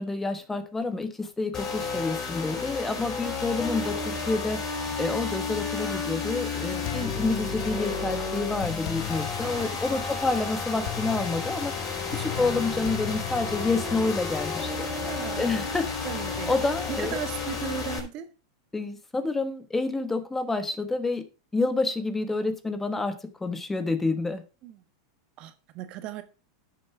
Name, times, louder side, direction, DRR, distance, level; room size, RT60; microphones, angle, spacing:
voice 1, 0.0-4.7 5.0-11.7 12.1-14.9 15.4-16.1 16.5-17.2 18.7-21.3 21.5-24.4, left 3 dB, 10° left, 1.1 m, -28 dB
sound 1, 1.5-18.0, left 4 dB, 30° left, 4.7 m, -32 dB
voice 2, 6.7-7.1 9.4-10.0 12.2-12.3 15.0-15.7 16.0-18.3 24.6-24.8 25.4-26.2, right 10 dB, 45° right, 1.4 m, -37 dB
sound 2, 6.8-14.8, left 14 dB, 55° left, 0.7 m, -39 dB
10.5 x 6.6 x 4.7 m
hypercardioid pair, 115°, 2 cm